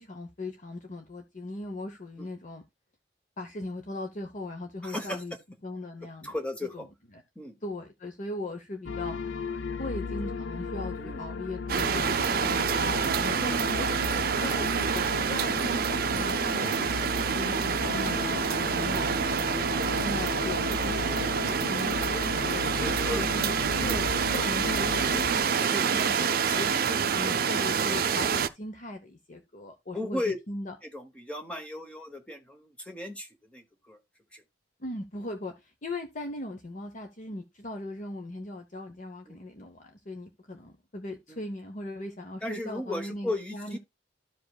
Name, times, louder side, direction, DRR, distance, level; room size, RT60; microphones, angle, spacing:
voice 1, 0.0-2.6 3.4-5.3 5.6-6.3 7.6-9.1 9.8-13.0 13.4-19.5 20.0-21.4 21.7-22.8 23.1-23.5 23.8-26.4 26.9-30.2 30.5-30.7 34.8-35.5 35.8-43.8, left 1 dB, 40° left, 0.9 m, -38 dB
voice 2, 4.8-5.2 6.2-6.9 7.4-7.6 11.0-11.2 13.2-13.7 17.4-17.6 19.3-19.6 22.5-23.2 26.5-26.8 29.9-30.4 30.8-34.0 34.3-34.4 39.3-39.4 41.3-41.4 42.4-43.8, left 1 dB, 5° left, 1.0 m, -36 dB
sound 1, 8.9-25.4, left 5 dB, 80° left, 0.5 m, -36 dB
sound 2, 11.7-28.5, right 6 dB, 50° right, 0.5 m, -27 dB
13.5 x 5.1 x 2.3 m
head